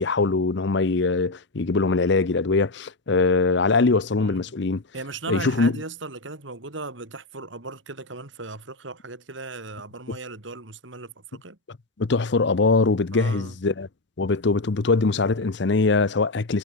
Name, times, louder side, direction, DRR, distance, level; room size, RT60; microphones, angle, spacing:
voice 1, 0.0-4.8 5.3-5.7 10.1-10.2 12.0-13.9 14.2-16.6, left 3 dB, 60° left, 0.7 m, -22 dB
voice 2, 4.2-4.5 4.9-11.6 13.1-13.6, right 3 dB, 70° right, 2.7 m, -37 dB
head